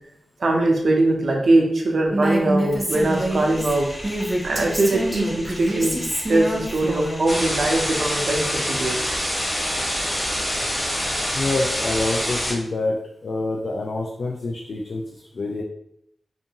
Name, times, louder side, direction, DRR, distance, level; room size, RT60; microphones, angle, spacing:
voice 1, 0.4-4.0 4.4-6.0 6.3-9.0, right 2 dB, 70° right, 1 dB, 0.6 m, -21 dB
Female speech woman speaking, 2.1-7.2, right 1 dB, 10° right, 0.6 m, -26 dB
sound 1, 2.9-8.4, left 1 dB, 45° left, 1.1 m, -38 dB
sound 2, 7.3-12.5, equal, 25° left, 1.0 m, -25 dB
voice 2, 9.5-10.0 11.3-15.6, left 2 dB, 65° left, 0 dB, 0.3 m, -27 dB
2.6 x 2.5 x 2.8 m, 0.75 s
wide cardioid pair, 95°, 0 cm